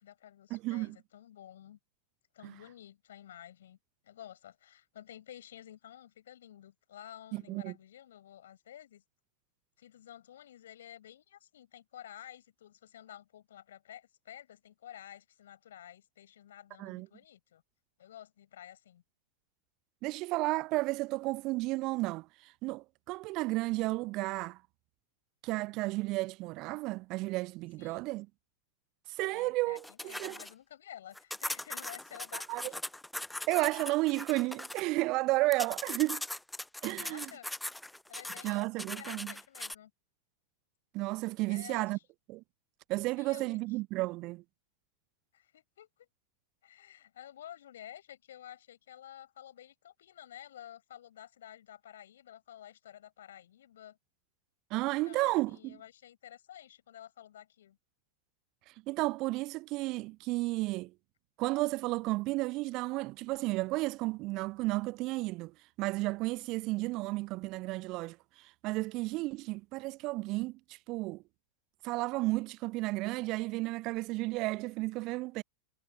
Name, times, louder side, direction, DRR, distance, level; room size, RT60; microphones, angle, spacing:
voice 1, 0.0-1.8 2.3-3.8 4.0-9.0 9.8-17.6 18.0-19.0 27.8-28.0 29.3-32.8 36.9-37.5 38.1-39.9 41.4-42.0 43.2-43.6 45.3-46.1 46.6-54.0 55.1-57.8, left 11 dB, 60° left, 6.9 m, -51 dB
voice 2, 0.5-1.0 2.4-2.5 7.3-7.7 16.8-17.1 20.0-24.6 25.4-28.3 29.1-30.4 32.5-32.7 33.5-36.2 36.8-37.3 38.4-39.3 40.9-42.0 42.3-42.4 42.9-44.4 54.7-55.8 58.9-60.9 61.4-71.2 71.8-75.4, right 21 dB, 40° right, 0.5 m, -33 dB
sound 1, 29.8-30.5 31.1-34.8 35.5-39.7, left 1 dB, 5° left, 0.6 m, -40 dB
figure-of-eight pair, 90°, 0 cm